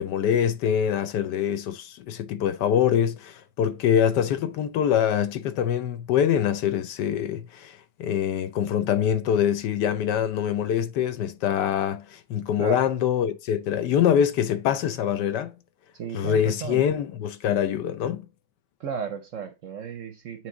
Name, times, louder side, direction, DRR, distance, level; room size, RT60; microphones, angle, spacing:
voice 1, 0.0-15.5 16.1-18.2, left 9 dB, 75° left, 1.2 m, -24 dB
voice 2, 15.9-16.8 18.8-20.5, right 7 dB, 65° right, 0.8 m, -34 dB
8.7 x 3.1 x 3.8 m
omnidirectional pair, 1.9 m